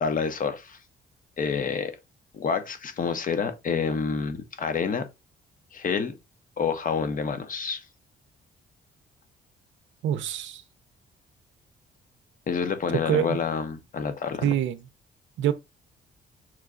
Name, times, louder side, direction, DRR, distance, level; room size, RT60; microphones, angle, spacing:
voice 1, 0.0-0.8 1.4-2.0 2.3-5.1 5.7-6.1 6.6-7.8 12.5-14.4, left 6 dB, 45° left, 0.9 m, -28 dB
voice 2, 10.0-10.6 12.9-13.4 14.4-14.9 15.4-15.5, right 10 dB, 75° right, 0.5 m, -25 dB
6.1 x 2.3 x 3.7 m
cardioid pair, 90°, 20 cm